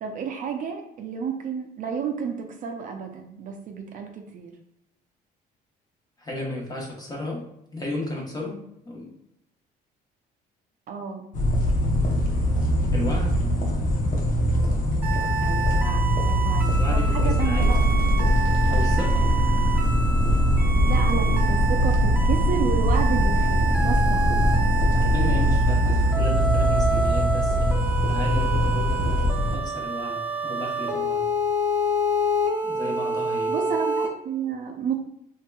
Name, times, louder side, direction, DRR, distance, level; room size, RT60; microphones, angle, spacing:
voice 1, 0.0-4.5 10.9-11.3 15.4-17.8 20.9-24.3 33.5-35.0, right 6 dB, 50° right, 4 dB, 0.4 m, -31 dB
voice 2, 6.2-8.6 8.8-9.1 12.9-13.4 16.6-17.7 18.7-19.3 24.9-31.3 32.6-33.5, left 1 dB, 20° left, -2 dB, 0.9 m, -34 dB
sound 1, 11.3-29.6, equal, 50° left, 0.7 m, -23 dB
sound 2, 15.0-34.1, right 2 dB, 10° right, 0.7 m, -28 dB
sound 3, 17.5-25.6, equal, 85° left, 1.2 m, -24 dB
3.2 x 2.8 x 2.2 m, 0.78 s
cardioid pair, 110°, 17 cm